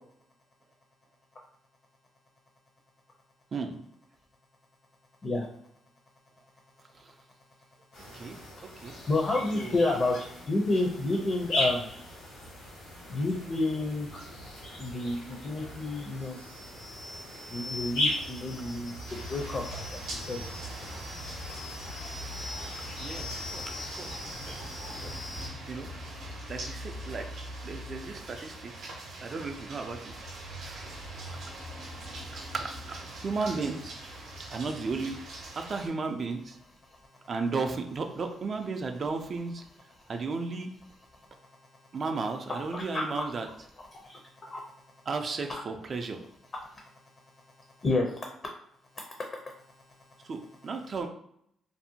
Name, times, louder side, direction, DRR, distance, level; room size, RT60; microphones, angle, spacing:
sound 1, 7.9-25.5, left 1 dB, 90° left, 1.3 m, -38 dB
voice 1, 8.1-8.9 9.5-9.7 21.9-22.2 23.0-24.2 24.5-24.6 25.0-25.2 25.7-25.9 26.5-27.3 27.6-28.9 29.2-30.1 30.6-30.9 32.3-33.9 34.5-35.2 35.5-36.6 37.3-39.6 40.1-40.7 41.9-43.5 45.1-46.2 50.2-51.1, right 4 dB, 45° right, 5 dB, 0.3 m, -34 dB
voice 2, 9.1-11.9 13.1-14.1 14.8-16.4 17.5-18.9 19.3-19.9 20.3-20.4 42.7-43.2 44.0-44.2 44.5-44.6 45.5-45.6 47.8-48.1, left 2 dB, 35° left, 1 dB, 0.5 m, -29 dB
sound 2, 19.1-35.9, right 1 dB, 80° right, 0.6 m, -42 dB
2.6 x 2.1 x 2.7 m, 0.71 s
cardioid pair, 90°, 0 cm